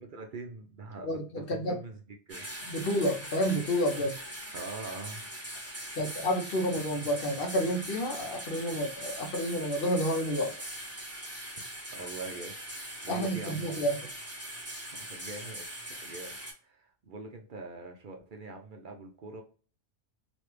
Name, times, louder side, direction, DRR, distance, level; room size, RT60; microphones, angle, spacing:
voice 1, 0.0-2.5 4.5-5.3 6.0-6.2 11.9-13.7 15.0-15.7 16.0-16.4 16.6-19.4, right 3 dB, 55° right, 3 dB, 0.6 m, -43 dB
voice 2, 1.0-1.8 2.7-4.2 6.0-10.5 13.1-14.0, equal, 60° left, 3 dB, 0.8 m, -30 dB
sound 1, 2.3-16.5, right 1 dB, 15° right, 1.0 m, -41 dB
3.0 x 2.5 x 3.1 m, 0.39 s
omnidirectional pair, 1.2 m